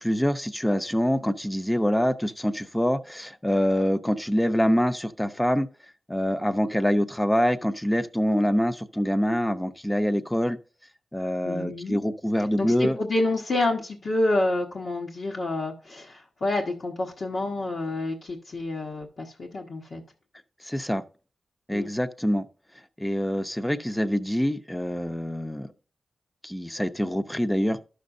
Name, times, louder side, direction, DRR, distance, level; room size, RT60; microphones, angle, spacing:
voice 1, 0.0-5.7 6.1-10.6 11.1-13.0 20.7-21.0 21.7-22.5 23.0-25.7 26.4-27.8, equal, 10° left, 0.7 m, -25 dB
voice 2, 11.4-12.0 12.6-20.0 21.7-21.9, left 2 dB, 65° left, 1.3 m, -28 dB
12.0 x 6.4 x 2.6 m
cardioid pair, 65°, 0 cm